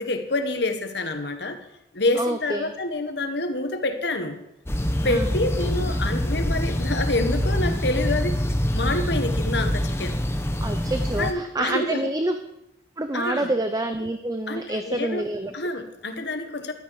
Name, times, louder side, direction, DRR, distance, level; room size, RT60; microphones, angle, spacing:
voice 1, 0.0-1.6 1.9-4.4 5.0-8.4 8.7-10.2 11.2-12.1 13.1-13.5 14.5-15.3 15.5-16.7, left 2 dB, 65° left, 7 dB, 1.4 m, -27 dB
voice 2, 2.2-2.7 5.1-5.3 10.6-12.4 13.0-15.5, right 1 dB, 20° right, 7 dB, 0.6 m, -27 dB
sound 1, 4.7-11.3, equal, 15° left, 0.8 m, -25 dB
14.5 x 12.0 x 4.9 m, 0.86 s
head